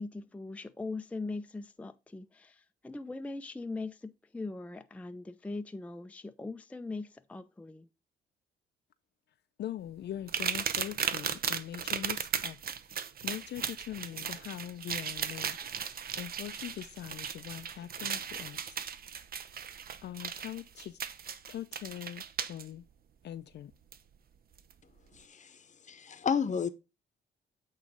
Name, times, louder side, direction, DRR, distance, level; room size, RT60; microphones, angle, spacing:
voice 1, 0.0-7.9, left 3 dB, 5° left, 0.5 m, -40 dB
voice 2, 9.6-12.6 12.9-18.8 20.0-21.0 21.5-22.9 23.2-23.7, left 11 dB, 60° left, 0.5 m, -42 dB
sound 1, 10.3-22.6 23.9-24.0 24.6-24.7, right 7 dB, 50° right, 0.7 m, -36 dB
voice 3, 25.1-26.7, left 6 dB, 40° left, 0.8 m, -32 dB
8.5 x 3.2 x 4.9 m
cardioid pair, 90°, 20 cm